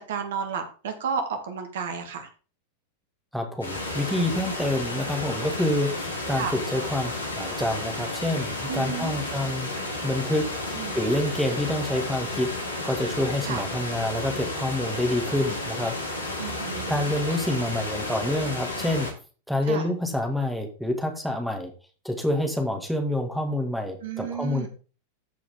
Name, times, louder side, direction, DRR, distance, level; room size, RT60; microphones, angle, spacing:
voice 1, 0.0-2.3 6.4-6.5 8.7-9.2 10.7-10.9 13.4-13.6 16.4-16.9 19.7-19.9 24.0-24.7, right 6 dB, 60° right, 7 dB, 1.7 m, -32 dB
voice 2, 3.3-9.7 10.0-12.5 12.8-16.0 16.9-19.1 19.5-21.7 22.0-24.7, left 1 dB, ahead, 3 dB, 1.9 m, -27 dB
sound 1, 3.6-19.1, left 2 dB, 80° left, 2.2 m, -32 dB
14.0 x 4.8 x 3.7 m, 0.36 s
figure-of-eight pair, 90°, 0 cm